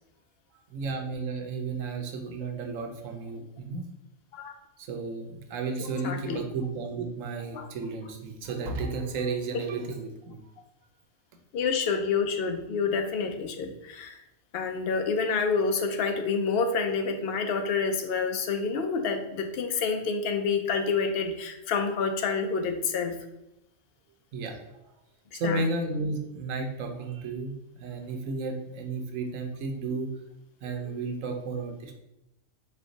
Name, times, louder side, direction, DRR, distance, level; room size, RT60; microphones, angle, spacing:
voice 1, 0.7-3.9 4.8-10.4 24.3-24.6 25.3-27.5 27.8-30.1 30.6-32.0, right 3 dB, 80° right, 4 dB, 1.1 m, -33 dB
voice 2, 6.0-6.4 7.5-7.7 9.5-9.6 9.9-10.0 11.5-14.2 14.5-23.2 25.3-25.6, left 5 dB, 60° left, 5 dB, 0.7 m, -28 dB
4.3 x 2.3 x 3.8 m, 0.90 s
omnidirectional pair, 1.3 m